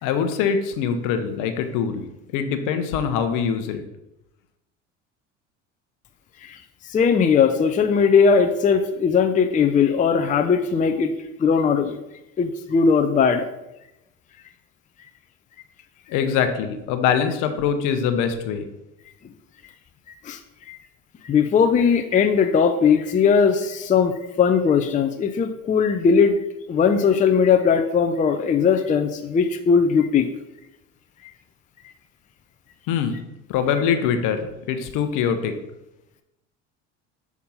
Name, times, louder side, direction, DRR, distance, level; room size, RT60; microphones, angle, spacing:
voice 1, 0.0-2.0 2.3-3.8 16.1-18.6 32.9-33.2 33.5-35.5, left 7 dB, 60° left, 7 dB, 0.9 m, -23 dB
voice 2, 6.9-11.1 11.4-12.0 12.4-13.5 20.2-20.4 20.7-20.8 21.2-26.4 26.7-30.3, left 6 dB, 20° left, 6 dB, 0.5 m, -19 dB
5.9 x 3.5 x 5.6 m, 0.91 s
hypercardioid pair, 75°, 36 cm